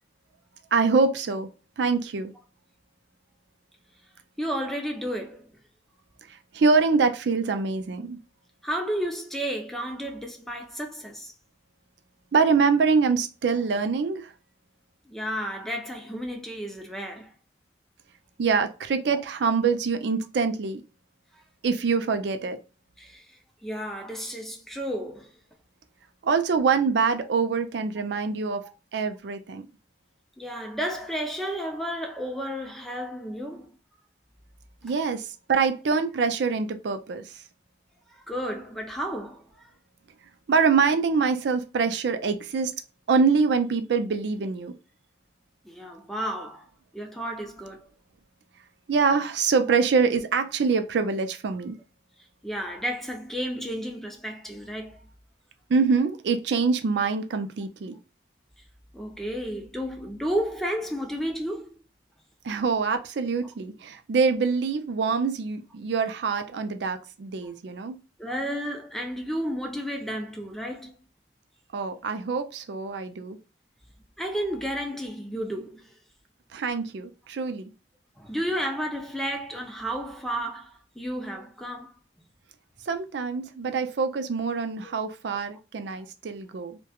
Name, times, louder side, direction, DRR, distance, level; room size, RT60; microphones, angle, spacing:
voice 1, 0.7-1.5 1.8-2.3 6.3-8.2 12.3-14.3 18.4-20.8 21.6-22.6 26.2-28.6 28.9-29.7 34.8-37.4 40.5-42.7 43.1-44.7 48.9-51.8 55.7-58.0 62.4-68.0 71.7-73.4 76.5-77.7 82.9-86.8, right 5 dB, 70° right, 0.4 m, -25 dB
voice 2, 4.4-5.5 8.6-11.3 15.1-17.3 21.3-21.4 23.0-25.3 28.6-28.7 30.4-33.7 38.1-39.7 45.6-46.7 46.9-47.8 52.4-55.0 58.9-61.8 68.2-71.0 74.2-76.0 78.2-81.9 84.8-84.9, equal, ahead, 0.4 m, -32 dB
2.9 x 2.2 x 2.3 m
head